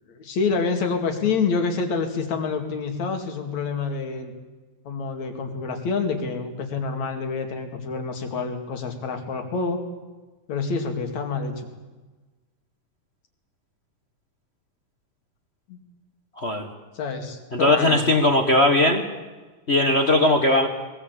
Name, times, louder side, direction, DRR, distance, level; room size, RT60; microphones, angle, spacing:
voice 1, 0.1-4.3 4.9-9.8 10.5-11.7 15.7-15.8 17.0-18.0, left 4 dB, 65° left, 5 dB, 3.7 m, -27 dB
voice 2, 16.4-16.7 17.5-19.0 19.7-20.7, left 1 dB, 40° left, 5 dB, 0.9 m, -19 dB
21.5 x 21.0 x 8.3 m, 1.3 s
omnidirectional pair, 3.4 m